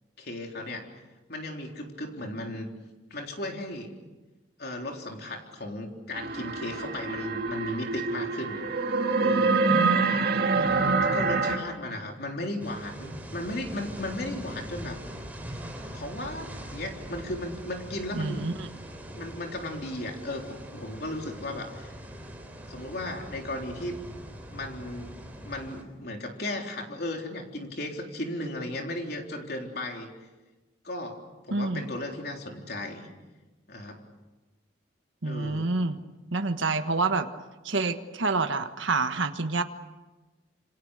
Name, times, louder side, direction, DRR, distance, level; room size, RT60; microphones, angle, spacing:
voice 1, 0.2-0.9 1.3-2.7 3.1-3.9 4.6-8.6 9.2-9.6 11.0-15.0 15.9-18.5 19.1-21.9 22.7-24.0 24.5-25.1 25.4-30.1 30.8-31.2 31.4-33.1 33.7-34.0 35.2-35.7, left 1 dB, 50° left, 2 dB, 3.8 m, -35 dB
sound 1, 6.1-11.6, right 4 dB, 50° right, 2.4 m, -26 dB
voice 2, 9.7-10.7 18.1-18.7 31.5-31.9 35.2-36.0 36.3-37.3 37.6-39.6, right 3 dB, 75° right, 7 dB, 1.4 m, -28 dB
sound 2, 12.6-25.8, equal, 10° right, 3.8 m, -42 dB
28.0 x 26.5 x 6.7 m, 1.2 s
head